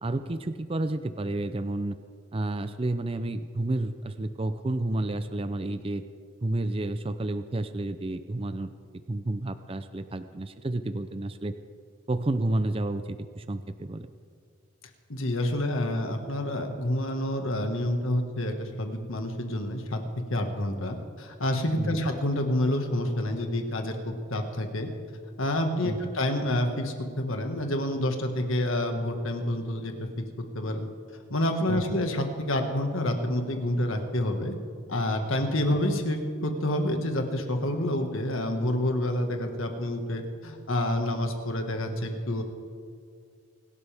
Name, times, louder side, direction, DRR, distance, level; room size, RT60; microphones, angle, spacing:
voice 1, 0.0-2.0 2.3-6.1 6.4-8.7 9.1-11.5 12.1-14.1 21.8-22.0 25.8-26.1 31.7-32.0, right 2 dB, 25° right, 10 dB, 0.5 m, -30 dB
voice 2, 15.1-20.0 20.3-24.9 25.4-30.1 30.6-30.9 31.3-34.5 34.9-42.4, left 1 dB, 80° left, 4 dB, 1.7 m, -28 dB
26.5 x 12.5 x 3.5 m, 2.2 s
head